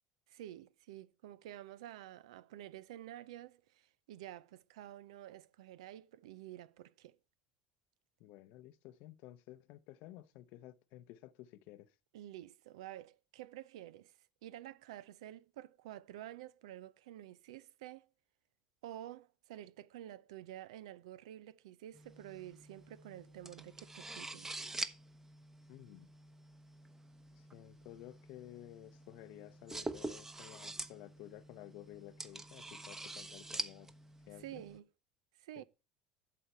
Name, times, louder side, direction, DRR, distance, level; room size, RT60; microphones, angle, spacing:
voice 1, 0.3-7.2 12.1-18.1 18.8-24.5 34.4-34.8 35.4-35.6, right 13 dB, 85° right, 0.5 m, -50 dB
voice 2, 8.2-11.9 25.7-26.1 27.4-33.9 34.3-34.6 35.6-35.7, left 15 dB, 70° left, 0.7 m, -53 dB
sound 1, 21.9-34.8, right 2 dB, 15° right, 0.9 m, -46 dB
8.5 x 6.6 x 4.4 m
hypercardioid pair, 80°, 3 cm